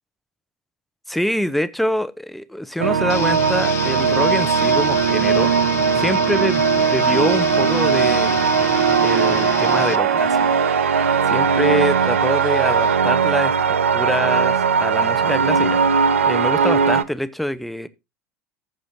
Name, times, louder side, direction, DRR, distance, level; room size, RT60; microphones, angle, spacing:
voice 1, 1.1-5.5 6.0-8.4 9.0-10.6 11.3-13.5 13.9-16.0 16.2-17.9, equal, ahead, 0.7 m, -25 dB
sound 1, 2.8-17.0, right 6 dB, 75° right, 0.5 m, -18 dB
sound 2, 3.1-10.0, left 11 dB, 35° left, 0.8 m, -30 dB
Bowed string instrument, 7.3-13.1, right 3 dB, 40° right, 2.2 m, -42 dB
14.5 x 6.3 x 2.8 m
figure-of-eight pair, 75°, 7 cm